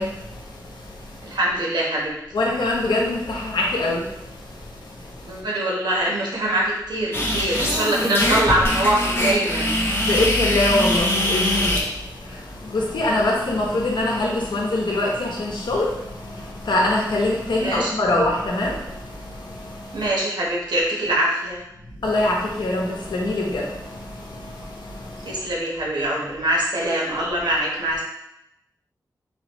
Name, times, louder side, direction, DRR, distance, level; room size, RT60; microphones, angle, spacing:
voice 1, 0.0-1.4 2.3-5.4 10.0-20.1 22.0-25.4, left 2 dB, 85° left, -2 dB, 0.9 m, -25 dB
voice 2, 1.2-2.1 5.2-9.7 17.6-17.9 19.9-21.6 25.2-28.0, right 1 dB, 75° right, -4 dB, 1.2 m, -23 dB
sound 1, 7.1-11.8, left 1 dB, 30° left, 0.8 m, -22 dB
4.0 x 3.0 x 3.0 m, 0.85 s
wide cardioid pair, 110°, 7 cm